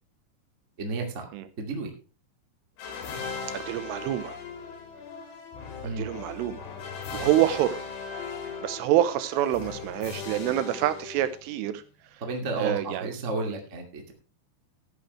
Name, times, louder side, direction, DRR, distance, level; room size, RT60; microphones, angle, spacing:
voice 1, 0.8-1.3 1.6-1.9 5.8-6.1 12.2-14.1, right 3 dB, 35° right, 2 dB, 1.2 m, -32 dB
sound 1, 2.8-11.7, left 5 dB, 85° left, 5.1 m, -38 dB
voice 2, 3.5-4.4 6.0-6.7 7.1-7.9 8.6-11.8 12.6-13.1 13.5-13.6, right 12 dB, 85° right, 12 dB, 3.4 m, -26 dB
14.0 x 11.0 x 3.2 m, 0.33 s
omnidirectional pair, 5.7 m